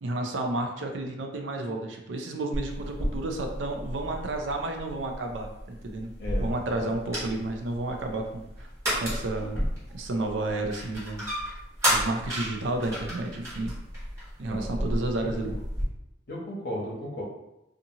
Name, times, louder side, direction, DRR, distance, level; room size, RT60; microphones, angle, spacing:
voice 1, 0.0-6.1 6.4-8.4 9.0-9.6 9.9-11.6 11.9-13.7 14.4-15.6, right 2 dB, 85° right, 3 dB, 0.5 m, -31 dB
sound 1, 2.5-15.9, equal, 15° right, 1.1 m, -33 dB
voice 2, 6.2-6.5 6.8-7.2 14.5-15.0 15.5-15.6 16.3-17.2, equal, 60° left, -3 dB, 0.9 m, -36 dB
2.7 x 2.5 x 2.7 m, 0.90 s
head